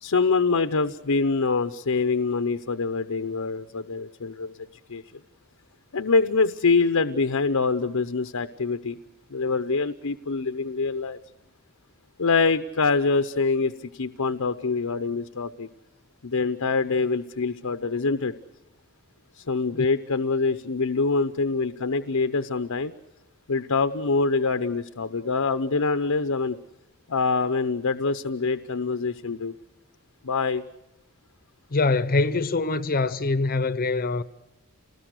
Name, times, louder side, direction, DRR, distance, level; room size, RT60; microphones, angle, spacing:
voice 1, 0.0-5.0 5.9-9.0 9.3-11.2 12.2-15.7 16.2-18.3 19.4-22.9 23.5-26.6 27.1-29.5 30.2-30.6, left 4 dB, 80° left, 0.8 m, -25 dB
voice 2, 31.7-34.2, left 3 dB, 45° left, 0.8 m, -24 dB
29.0 x 20.0 x 6.6 m
head